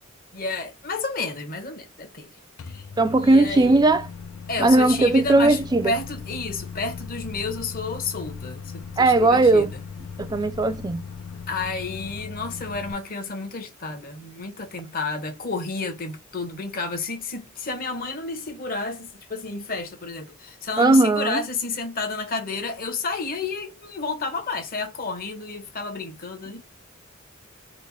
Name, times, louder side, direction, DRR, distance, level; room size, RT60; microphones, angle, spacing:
voice 1, 0.3-2.3 2.7-2.8 3.2-3.8 4.5-9.7 11.5-26.6, left 3 dB, 45° left, 0.9 m, -31 dB
Microwave oven, 2.6-12.9, left 5 dB, 75° left, 0.4 m, -38 dB
voice 2, 3.0-4.1 4.6-5.9 9.0-9.7 10.2-11.0 20.8-21.4, right 2 dB, 20° right, 0.3 m, -18 dB
3.1 x 2.2 x 3.8 m
head